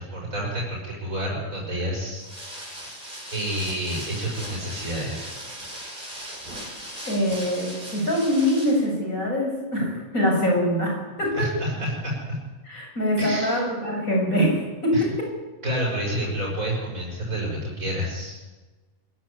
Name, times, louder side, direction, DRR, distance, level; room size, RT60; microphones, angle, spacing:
voice 1, 0.0-2.3 3.3-5.3 11.3-12.4 13.2-13.6 14.9-15.0 15.6-18.4, equal, 75° right, -3 dB, 6.1 m, -29 dB
sound 1, 2.2-8.9, right 1 dB, 35° right, 6.7 m, -38 dB
voice 2, 7.1-11.5 12.7-15.1, equal, 85° left, 0 dB, 7.8 m, -24 dB
24.0 x 16.0 x 9.8 m, 1.3 s
omnidirectional pair, 1.4 m